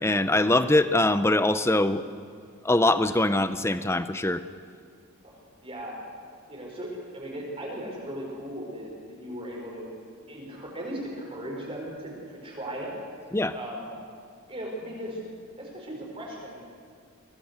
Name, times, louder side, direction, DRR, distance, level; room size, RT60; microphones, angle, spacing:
voice 1, 0.0-2.0 2.6-4.4 13.3-13.5, left 2 dB, 10° left, 11 dB, 0.7 m, -23 dB
voice 2, 5.6-6.0 6.5-9.9 10.3-12.9 13.5-13.9 14.5-15.2 15.6-16.6, right 1 dB, 25° right, -3 dB, 4.8 m, -37 dB
24.0 x 17.5 x 8.2 m, 2.3 s
head